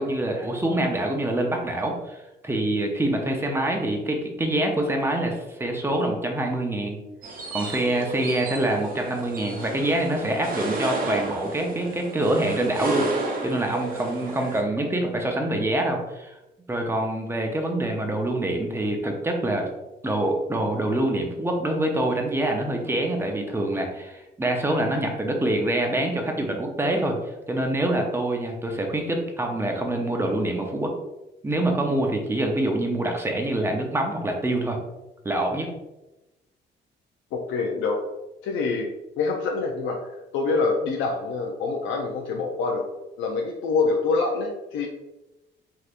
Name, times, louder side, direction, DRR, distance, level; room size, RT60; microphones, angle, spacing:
voice 1, 0.0-2.2 2.4-7.0 7.5-13.1 13.4-16.3 16.7-19.7 20.0-27.2 27.5-30.9 31.4-34.8 35.2-35.7, right 1 dB, 10° right, 2 dB, 0.6 m, -25 dB
sound 1, 7.2-14.6, right 2 dB, 45° right, 0.8 m, -33 dB
voice 2, 37.3-38.0 38.4-38.9 39.2-42.9 43.2-44.9, left 4 dB, 85° left, 0 dB, 0.4 m, -26 dB
3.4 x 2.8 x 2.4 m, 0.99 s
cardioid pair, 90°, 20 cm